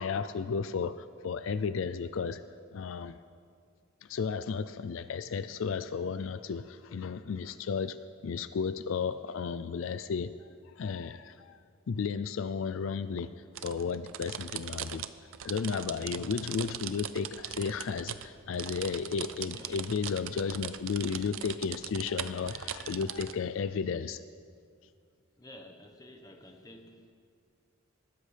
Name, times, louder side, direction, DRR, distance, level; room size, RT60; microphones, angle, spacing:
voice 1, 0.0-2.4 2.7-3.2 4.0-8.0 8.2-10.5 10.8-11.6 11.9-13.3 13.6-15.1 15.4-24.2, left 5 dB, 75° left, 12 dB, 0.4 m, -33 dB
sound 1, 13.6-23.3, right 10 dB, 75° right, 0.5 m, -40 dB
voice 2, 25.4-27.1, left 1 dB, 20° left, 3 dB, 1.2 m, -51 dB
22.5 x 13.0 x 3.4 m, 2.2 s
head